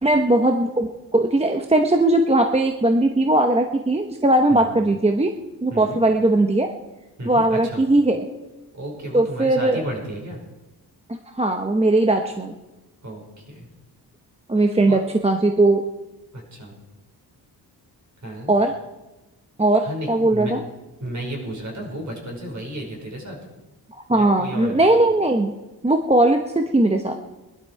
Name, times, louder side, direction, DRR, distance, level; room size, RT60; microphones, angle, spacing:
voice 1, 0.0-5.3 5.6-6.7 7.3-8.2 9.1-9.8 11.1-12.5 14.5-15.8 18.5-18.7 19.6-20.6 24.1-25.5 25.8-27.1, right 2 dB, 15° right, 4 dB, 0.9 m, -19 dB
voice 2, 5.7-6.0 7.2-7.8 8.7-10.4 13.0-13.7 14.6-15.0 16.3-16.7 18.2-18.5 19.8-20.5 21.0-23.4 24.1-24.9, right 1 dB, 45° right, 0 dB, 5.3 m, -33 dB
21.5 x 12.0 x 4.7 m, 1.1 s
wide cardioid pair, 135°, 41 cm